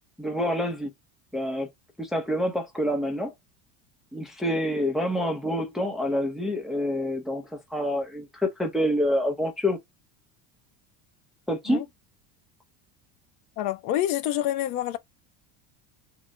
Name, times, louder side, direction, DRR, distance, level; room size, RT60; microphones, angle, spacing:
voice 1, 0.2-0.9 1.3-1.7 2.0-3.3 4.1-7.4 7.7-9.8 11.5-11.8, equal, ahead, 0.5 m, -27 dB
voice 2, 13.6-15.0, left 12 dB, 60° left, 0.5 m, -27 dB
3.7 x 2.0 x 4.1 m
cardioid pair, 175°, 35 cm